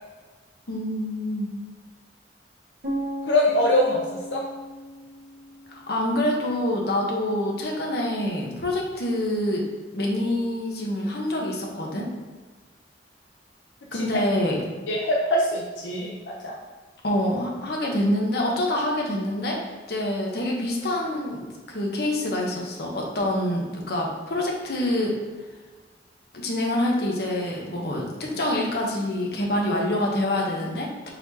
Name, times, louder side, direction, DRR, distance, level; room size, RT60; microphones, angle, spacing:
voice 1, 0.7-1.5 5.7-9.6 9.9-12.1 13.9-14.6 17.0-19.6 19.9-25.2 26.3-31.1, left 1 dB, 60° left, -1 dB, 0.9 m, -26 dB
sound 1, 2.8-6.7, right 1 dB, 55° right, 1.3 m, -36 dB
voice 2, 3.2-4.0 4.3-4.4 14.9-16.6, left 1 dB, 85° left, -2 dB, 0.6 m, -23 dB
4.6 x 4.1 x 2.8 m, 1.3 s
head